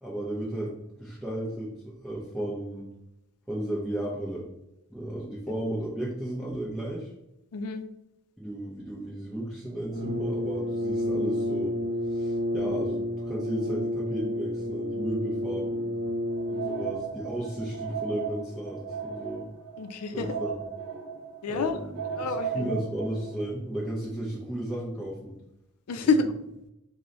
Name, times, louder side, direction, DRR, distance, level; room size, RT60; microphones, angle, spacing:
voice 1, 0.0-2.9 3.5-4.5 4.9-7.1 8.4-11.8 12.1-15.9 16.5-19.5 20.1-20.6 21.5-21.9 22.2-25.3, right 1 dB, ahead, -6 dB, 0.6 m, -34 dB
voice 2, 7.5-7.8 19.8-20.3 21.4-21.8 22.1-22.8 25.9-26.2, left 4 dB, 85° left, 9 dB, 0.4 m, -28 dB
Brass instrument, 9.9-17.1, left 1 dB, 35° right, 0.9 m, -30 dB
sound 1, 16.3-23.4, right 7 dB, 60° right, 0.7 m, -36 dB
4.6 x 2.1 x 3.8 m, 0.86 s
head